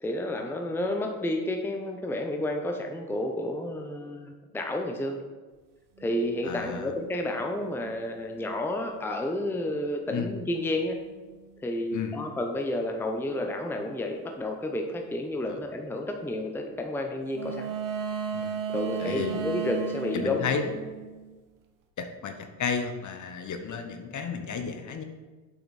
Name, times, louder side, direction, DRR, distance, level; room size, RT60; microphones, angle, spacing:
voice 1, 0.0-5.2 6.0-11.0 11.6-17.7 18.7-20.6, left 1 dB, 5° left, 3 dB, 0.7 m, -31 dB
sound 1, 6.0-9.0 10.9-11.6 17.3-21.4, right 6 dB, 45° right, 1.1 m, -37 dB
voice 2, 6.4-6.9 10.1-10.3 11.9-12.3 15.5-15.6 18.3-18.6 19.0-19.4 20.1-20.6 22.0-25.0, left 6 dB, 40° left, 7 dB, 1.0 m, -33 dB
7.0 x 5.6 x 4.2 m, 1.3 s
hypercardioid pair, 75°, 47 cm